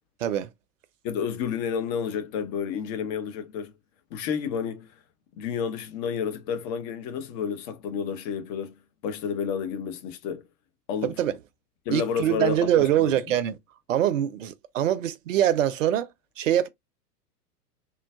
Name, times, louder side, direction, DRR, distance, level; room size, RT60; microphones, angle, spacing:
voice 1, 1.0-3.7 4.1-4.9 5.4-8.7 9.0-10.4 10.9-11.2 11.9-13.2, left 7 dB, 25° left, 0.5 m, -30 dB
voice 2, 11.0-11.4 11.9-13.6 13.9-16.1 16.4-16.7, right 11 dB, 55° right, 0.6 m, -24 dB
3.8 x 2.3 x 2.2 m
figure-of-eight pair, 100°, 48 cm